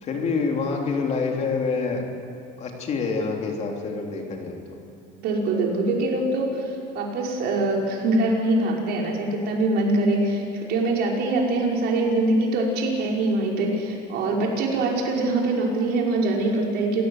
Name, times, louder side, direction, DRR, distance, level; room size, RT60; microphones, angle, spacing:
voice 1, 0.0-2.1 2.6-4.8, left 4 dB, 40° left, 1 dB, 3.3 m, -27 dB
voice 2, 5.2-10.4 10.7-17.0, right 2 dB, 60° right, -1 dB, 5.3 m, -23 dB
28.0 x 17.0 x 8.0 m, 2.7 s
cardioid pair, 150°, 19 cm